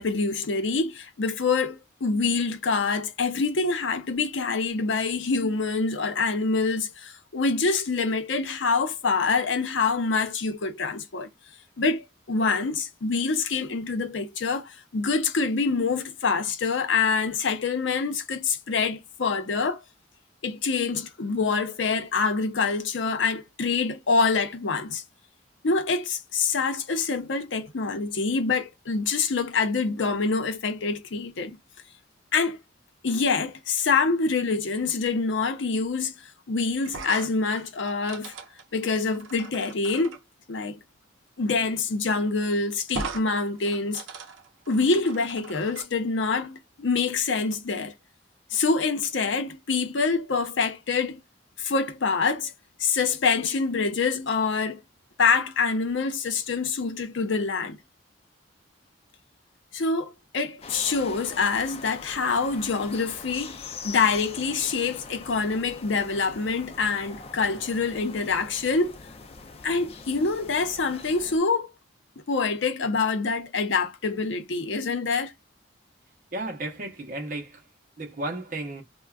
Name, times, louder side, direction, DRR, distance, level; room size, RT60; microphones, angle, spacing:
voice 1, 0.0-11.3 11.8-19.8 20.4-25.0 25.6-31.6 32.3-32.6 33.0-38.3 38.7-40.2 40.5-40.8 41.4-44.0 44.7-47.9 48.5-51.2 51.6-52.5 52.8-54.8 55.2-57.8 59.7-69.0 69.6-71.7 72.3-75.3, left 4 dB, 80° left, 0.6 m, -26 dB
sound 1, 36.8-40.2 41.7-41.8 42.1-42.2 42.9-43.3 43.6-45.9, right 4 dB, 90° right, 0.5 m, -39 dB
sound 2, 60.6-71.4, left 4 dB, 30° left, 0.4 m, -43 dB
voice 2, 76.3-77.6 78.0-78.8, right 2 dB, 45° right, 0.7 m, -33 dB
3.5 x 2.2 x 2.3 m
head